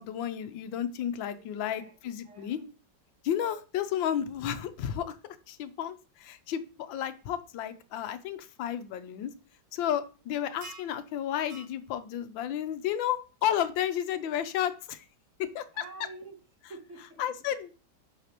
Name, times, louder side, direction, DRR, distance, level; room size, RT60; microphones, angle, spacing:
voice 1, 0.0-2.6 3.2-5.1 5.5-9.3 9.7-15.0 15.4-15.8 17.2-17.7, left 10 dB, 85° left, 10 dB, 1.5 m, -32 dB
voice 2, 1.3-1.9 2.2-2.7 15.7-16.4 16.7-17.2, right 3 dB, 45° right, 3 dB, 1.4 m, -47 dB
sound 1, 10.6-11.0 11.5-11.7 13.4-13.5, right 3 dB, 70° right, 1.4 m, -46 dB
8.0 x 5.8 x 2.9 m, 0.34 s
omnidirectional pair, 2.0 m